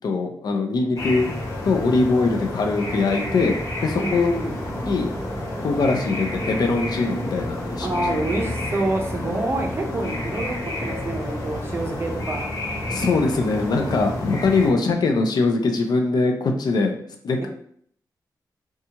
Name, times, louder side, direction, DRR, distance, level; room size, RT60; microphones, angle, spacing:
voice 1, 0.0-1.3 1.6-4.4 4.8-5.1 5.6-8.1 12.9-17.0 17.2-17.5, left 3 dB, 70° left, 4 dB, 0.4 m, -22 dB
sound 1, 1.0-14.7, left 1 dB, 50° left, 0.8 m, -30 dB
voice 2, 4.0-4.6 7.8-12.5, right 2 dB, 35° right, 1 dB, 0.5 m, -27 dB
2.7 x 2.3 x 2.8 m, 0.63 s
wide cardioid pair, 130°, 7 cm